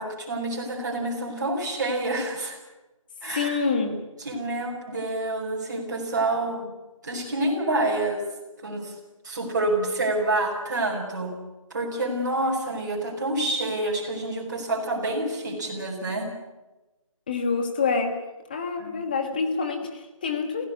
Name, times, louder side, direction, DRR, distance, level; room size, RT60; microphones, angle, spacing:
voice 1, 0.0-2.6 3.2-3.6 4.2-6.7 7.0-8.2 8.6-8.9 9.2-11.3 11.7-16.3 18.8-19.0, right 2 dB, 35° right, -1 dB, 5.8 m, -28 dB
voice 2, 3.3-4.0 17.3-18.2 18.5-20.7, left 4 dB, 15° left, 6 dB, 1.5 m, -26 dB
25.0 x 16.5 x 8.5 m, 1.1 s
figure-of-eight pair, 175°, 17 cm